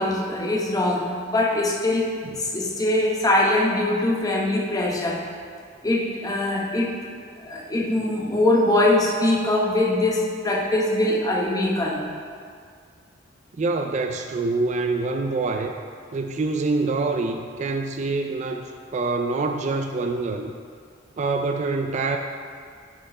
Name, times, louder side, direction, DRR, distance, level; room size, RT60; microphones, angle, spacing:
voice 1, 0.0-2.1 2.4-5.3 5.8-7.0 7.4-12.1, left 1 dB, 20° left, -2 dB, 0.9 m, -22 dB
voice 2, 13.6-15.7 16.1-20.5 21.2-22.2, right 3 dB, 35° right, 5 dB, 0.3 m, -25 dB
10.0 x 4.4 x 4.2 m, 2.1 s
head